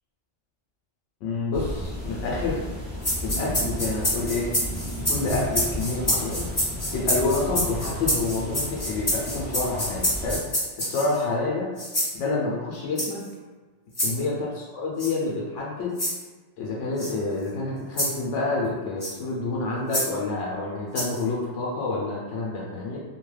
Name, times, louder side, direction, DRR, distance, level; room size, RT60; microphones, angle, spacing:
voice 1, 1.2-2.6 3.2-4.5 5.1-6.5 6.9-10.4 10.8-11.7 12.1-13.2 14.0-15.9 16.6-23.0, left 3 dB, 90° left, -4 dB, 0.9 m, -28 dB
sound 1, 1.5-10.4, left 1 dB, 15° right, 0.9 m, -34 dB
sound 2, 3.0-11.2 11.8-12.1 12.9-13.3 13.9-14.1 15.0-15.1 15.9-16.2 17.0-17.1 18.0-18.2 19.0-19.2 19.9-20.1 20.9-21.2, equal, 20° left, 1.0 m, -27 dB
2.6 x 2.2 x 3.1 m, 1.3 s
omnidirectional pair, 1.2 m